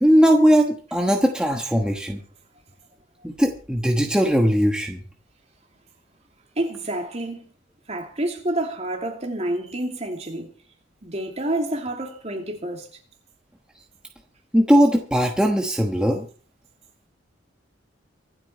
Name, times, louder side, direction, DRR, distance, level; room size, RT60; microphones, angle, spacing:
voice 1, 0.0-2.2 3.2-5.0 14.5-16.2, equal, 5° right, 1.2 m, -19 dB
voice 2, 6.6-7.4 7.9-10.5 11.0-12.9, right 1 dB, 35° right, 2.9 m, -28 dB
25.0 x 8.6 x 4.4 m
head